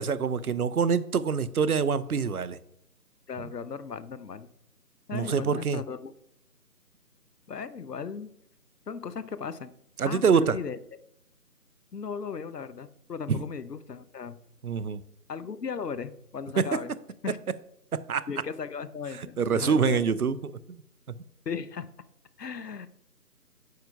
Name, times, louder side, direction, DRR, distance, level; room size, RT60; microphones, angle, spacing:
voice 1, 0.0-2.6 5.1-5.8 10.0-10.6 13.3-13.4 14.6-15.0 16.6-16.8 17.9-18.3 19.2-20.8 21.2-21.3, right 6 dB, 65° right, 17 dB, 0.6 m, -26 dB
voice 2, 3.3-4.5 5.1-6.1 7.5-8.3 8.9-9.7 10.1-10.8 11.9-14.4 15.3-16.9 17.2-17.4 18.3-20.0 21.5-21.9 22.4-22.9, left 6 dB, 80° left, 15 dB, 0.7 m, -36 dB
9.3 x 6.6 x 2.2 m, 0.76 s
figure-of-eight pair, 160°, 48 cm